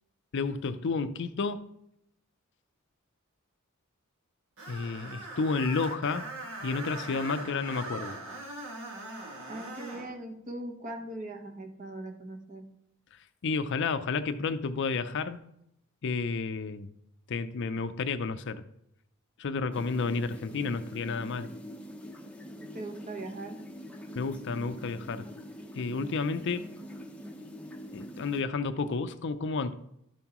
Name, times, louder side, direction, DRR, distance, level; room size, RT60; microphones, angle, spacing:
voice 1, 0.3-1.6 4.7-6.3 6.6-8.2 13.4-15.4 16.0-16.9 17.3-18.6 19.4-21.5 24.2-25.3 25.7-26.7 27.9-29.7, left 4 dB, 60° left, 0.5 m, -31 dB
Screech, 4.6-10.1, right 2 dB, 65° right, 1.7 m, -41 dB
voice 2, 9.5-12.7 22.6-23.6, right 2 dB, 35° right, 1.1 m, -40 dB
sound 1, 19.7-28.4, equal, 5° left, 0.7 m, -44 dB
12.0 x 7.2 x 3.0 m
head